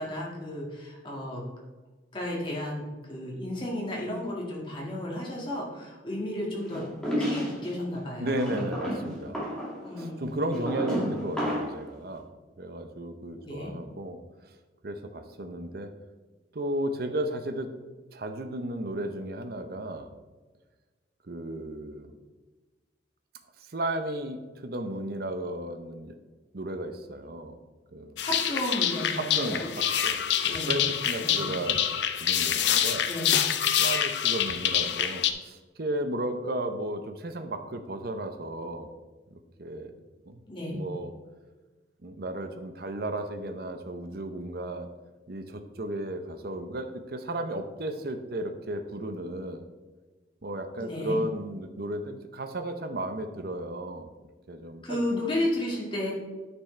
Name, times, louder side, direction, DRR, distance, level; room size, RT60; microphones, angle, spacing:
voice 1, 0.0-1.4 2.1-6.8 7.2-8.6 9.8-10.3 10.8-10.9 13.4-13.7 28.2-29.7 30.5-30.8 31.2-31.5 33.1-33.3 40.5-40.8 50.8-51.2 54.8-56.1, left 1 dB, 25° left, -3 dB, 1.9 m, -33 dB
sound 1, 6.7-7.7 8.4-11.8, equal, 5° left, 2.2 m, -31 dB
voice 2, 8.2-9.4 10.0-12.3 12.6-14.2 14.8-15.9 16.5-17.7 18.1-20.1 21.2-22.1 23.6-26.1 26.5-27.6 27.9-28.2 29.1-31.9 32.2-33.1 33.7-38.9 39.6-39.9 40.3-40.4 40.7-41.1 42.0-44.9 45.3-49.7 50.4-54.1 54.5-55.0, right 1 dB, 55° right, 8 dB, 0.7 m, -34 dB
sound 2, 28.2-35.3, left 10 dB, 70° left, 0.5 m, -26 dB
9.9 x 6.1 x 3.3 m, 1.3 s
head